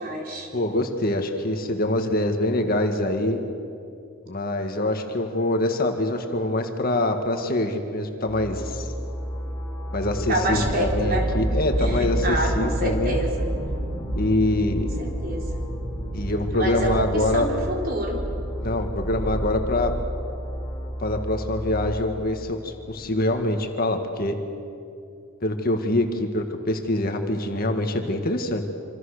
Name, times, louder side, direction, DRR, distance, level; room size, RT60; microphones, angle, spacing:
voice 1, 0.0-0.5 10.3-11.3 11.8-13.3 15.0-15.4 16.5-18.2, right 1 dB, 45° right, 0 dB, 4.0 m, -27 dB
voice 2, 0.5-3.4 4.3-8.9 9.9-13.2 14.1-14.9 16.1-17.5 18.6-20.0 21.0-24.4 25.4-28.6, left 1 dB, 45° left, 5 dB, 1.8 m, -25 dB
sound 1, 8.3-21.8, equal, 15° left, 3.0 m, -33 dB
sound 2, 9.9-22.3 22.8-22.9, right 1 dB, 70° right, 7.2 m, -31 dB
26.5 x 26.5 x 6.7 m, 2.5 s
head